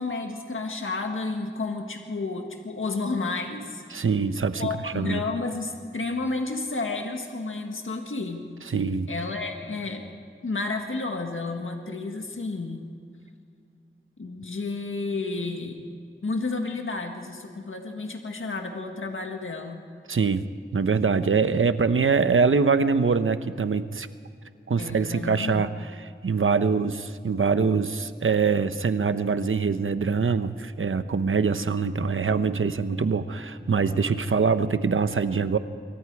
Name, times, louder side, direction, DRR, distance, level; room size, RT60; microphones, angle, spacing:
voice 1, 0.0-3.8 4.6-8.5 9.1-10.1 10.4-12.8 14.2-15.8 16.2-19.8 24.8-25.6, left 3 dB, 75° left, 3 dB, 1.9 m, -31 dB
voice 2, 3.9-5.2 8.7-9.1 20.1-24.1 24.7-35.6, right 5 dB, 80° right, 11 dB, 1.0 m, -24 dB
26.5 x 24.0 x 4.8 m, 2.3 s
wide cardioid pair, 65°, 21 cm